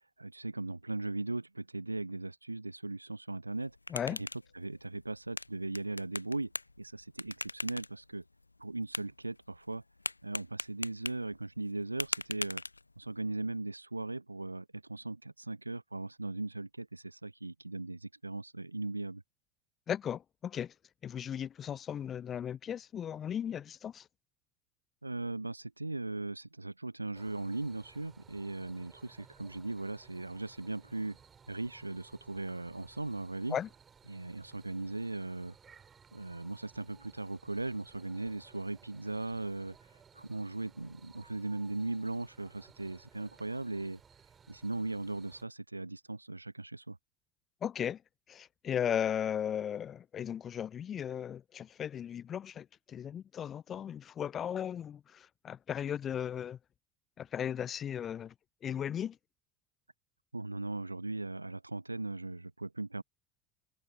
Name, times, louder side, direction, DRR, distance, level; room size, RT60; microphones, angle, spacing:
voice 1, 0.2-3.8 4.2-4.3 4.5-6.5 6.8-8.2 8.6-9.8 10.2-12.6 13.0-19.2 25.0-31.2 31.5-33.6 34.1-35.5 36.1-44.0 44.5-47.0 60.3-63.0, right 2 dB, 85° right, 1.0 m, -38 dB
sound 1, 3.5-13.2, left 3 dB, 85° left, 0.8 m, -43 dB
voice 2, 3.9-4.2 19.9-20.7 21.0-24.1 33.5-33.7 47.6-48.0 48.3-56.6 57.2-58.3 58.6-59.2, left 9 dB, 35° left, 0.4 m, -36 dB
sound 2, 27.1-45.4, right 6 dB, 30° right, 3.0 m, -60 dB
figure-of-eight pair, 70°, 0 cm